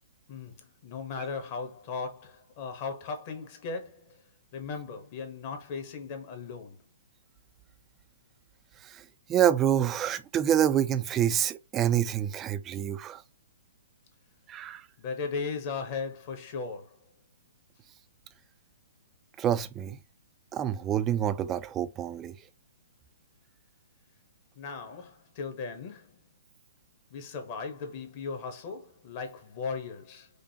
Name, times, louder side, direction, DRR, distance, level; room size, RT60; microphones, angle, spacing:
voice 1, 0.3-4.2 4.5-6.8 15.0-17.0 24.5-26.1 27.1-30.3, left 5 dB, 40° left, 1.1 m, -37 dB
voice 2, 9.3-13.2 14.5-14.9 19.4-20.0 20.5-22.3, right 10 dB, 20° right, 0.4 m, -27 dB
5.1 x 2.1 x 2.9 m
hypercardioid pair, 130°, 0 cm